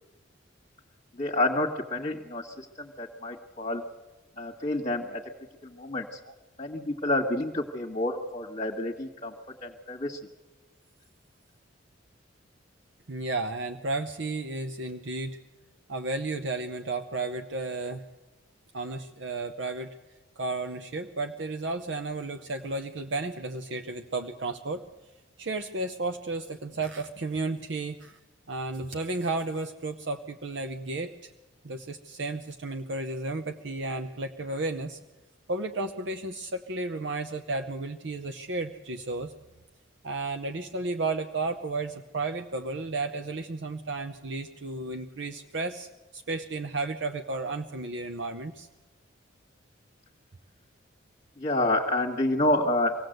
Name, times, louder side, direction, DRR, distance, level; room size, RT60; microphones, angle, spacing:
voice 1, 1.2-3.8 4.4-5.2 5.6-6.2 6.6-9.3 9.6-10.2 51.4-52.9, left 1 dB, 35° left, -2 dB, 1.5 m, -28 dB
voice 2, 13.1-15.4 15.9-18.0 18.7-20.0 20.4-24.8 25.4-28.2 28.5-31.3 31.6-35.0 35.5-39.3 40.0-48.7, right 3 dB, 65° right, 7 dB, 0.8 m, -33 dB
25.0 x 17.5 x 7.9 m, 1.2 s
head